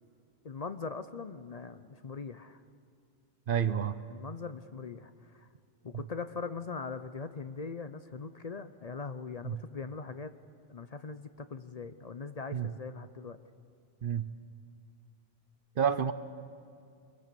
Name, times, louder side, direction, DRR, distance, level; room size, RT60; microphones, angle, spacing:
voice 1, 0.4-2.6 4.1-5.5 5.8-10.3 10.7-13.4, left 4 dB, 45° left, 10 dB, 0.7 m, -41 dB
voice 2, 3.5-4.0 5.9-6.0 9.4-9.6 12.5-12.7 14.0-14.3 15.8-16.1, right 8 dB, 60° right, 13 dB, 0.9 m, -29 dB
25.5 x 22.0 x 6.9 m, 2.4 s
omnidirectional pair, 1.1 m